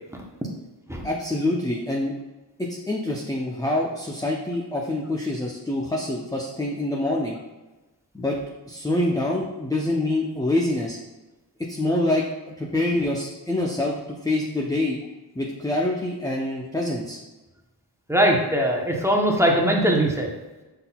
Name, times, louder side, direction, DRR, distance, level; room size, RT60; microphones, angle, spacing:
voice 1, 1.0-2.1 2.6-7.4 8.1-8.4 8.7-11.0 11.7-12.2 12.6-15.0 15.4-17.2, left 1 dB, 10° left, -2 dB, 0.5 m, -26 dB
voice 2, 18.1-20.3, right 1 dB, 5° right, -1 dB, 0.9 m, -20 dB
5.7 x 3.8 x 2.3 m, 1.1 s
cardioid pair, 55°, 41 cm